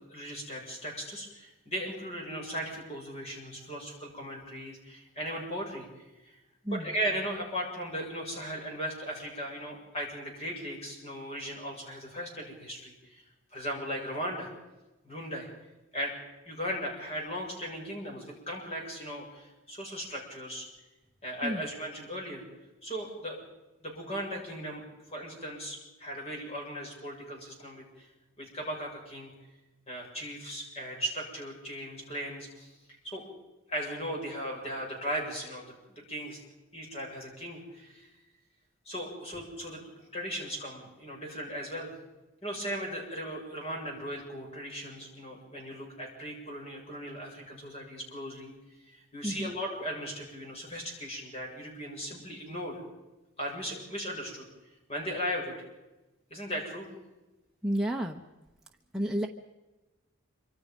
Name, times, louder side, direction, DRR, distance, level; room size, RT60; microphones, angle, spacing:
voice 1, 0.1-5.9 6.2-6.3 6.7-13.2 13.5-14.5 15.0-15.5 15.9-16.1 16.5-20.7 21.2-22.4 22.8-23.4 23.8-24.8 25.1-28.1 28.4-29.3 29.9-32.7 33.0-33.2 33.7-35.7 36.1-36.4 36.7-38.1 38.9-39.8 40.1-41.9 42.4-48.5 48.8-52.8 53.4-54.4 54.9-55.6 56.3-56.9, equal, 30° left, 0 dB, 7.0 m, -37 dB
voice 2, 6.6-7.0 21.4-21.7 49.2-49.5 57.6-58.2 58.9-59.3, right 1 dB, 5° right, 0 dB, 1.0 m, -31 dB
26.0 x 25.0 x 5.4 m, 1.1 s
head